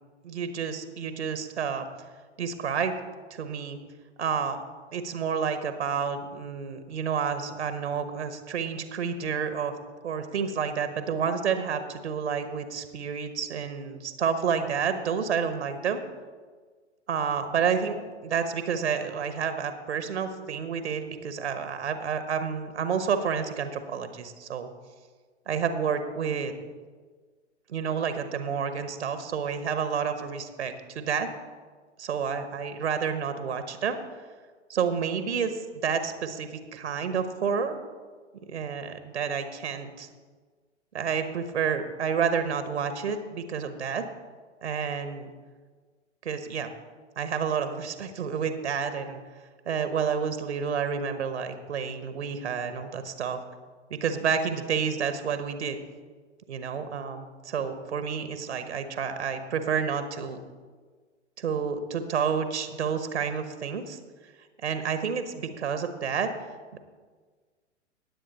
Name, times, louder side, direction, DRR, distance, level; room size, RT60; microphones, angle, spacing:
voice 1, 0.2-1.9 2.4-3.0 3.3-3.8 4.2-4.6 4.9-9.7 10.0-16.0 17.1-24.7 25.5-26.5 27.7-31.3 32.0-34.0 34.7-37.7 38.5-40.1 40.9-44.0 44.6-45.3 46.2-46.7 47.2-49.2 49.7-53.4 53.9-55.8 56.5-60.4 61.4-64.0 64.6-66.3 66.7-66.8, right 6 dB, 65° right, 9 dB, 1.1 m, -29 dB
18.5 x 7.9 x 4.1 m, 1.5 s
figure-of-eight pair, 105°, 36 cm